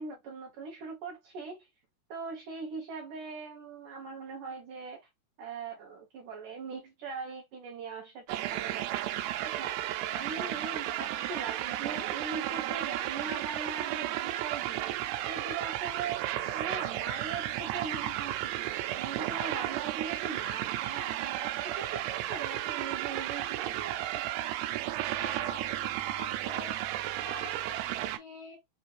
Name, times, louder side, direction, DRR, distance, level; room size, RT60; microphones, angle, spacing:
voice 1, 0.0-1.7 2.1-5.1 5.4-9.1 9.4-14.9 15.3-24.2, right 5 dB, 70° right, 2.0 m, -41 dB
sound 1, 8.3-28.2, right 13 dB, 90° right, 2.8 m, -33 dB
voice 2, 25.2-26.9 27.2-28.6, left 3 dB, 75° left, 1.6 m, -47 dB
6.2 x 2.6 x 2.9 m
omnidirectional pair, 4.9 m